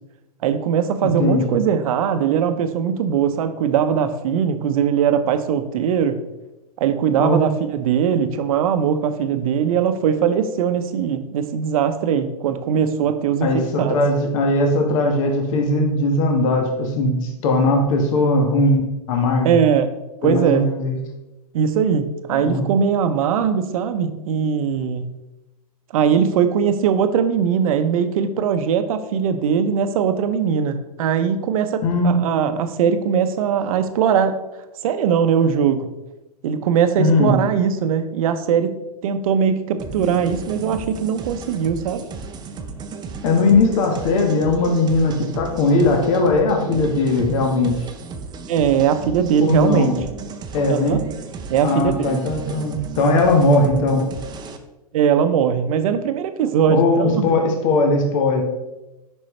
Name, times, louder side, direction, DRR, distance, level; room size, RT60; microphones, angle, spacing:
voice 1, 0.4-6.2 6.8-14.0 19.4-19.9 20.2-20.6 21.5-25.1 25.9-34.3 34.8-35.9 36.4-38.7 39.0-42.0 48.5-49.9 50.7-51.0 51.5-52.2 54.9-57.2, right 7 dB, 60° right, 9 dB, 0.7 m, -20 dB
voice 2, 1.2-1.6 7.2-7.4 13.4-18.8 19.1-19.5 20.2-21.0 22.4-22.7 31.8-32.2 37.0-37.4 43.2-47.7 49.4-49.9 50.5-51.0 51.6-54.0 56.7-58.4, left 2 dB, 55° left, 2 dB, 1.3 m, -19 dB
sound 1, 39.8-54.6, right 4 dB, 20° right, 0.6 m, -34 dB
7.6 x 5.4 x 3.2 m, 1.0 s
hypercardioid pair, 110°, 20 cm